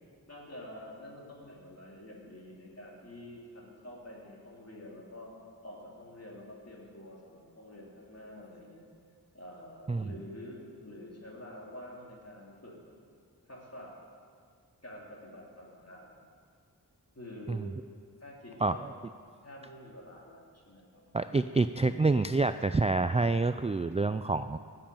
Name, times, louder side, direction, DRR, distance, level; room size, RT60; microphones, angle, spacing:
voice 1, 0.3-5.3 5.6-8.9 9.3-12.8 13.4-13.9 14.8-16.1 17.2-17.8 18.2-18.9 19.4-21.5, left 1 dB, 40° left, -3 dB, 3.6 m, -48 dB
voice 2, 21.1-24.6, right 3 dB, 20° right, 10 dB, 0.3 m, -27 dB
18.0 x 7.8 x 7.2 m, 2.1 s
wide cardioid pair, 50°, 38 cm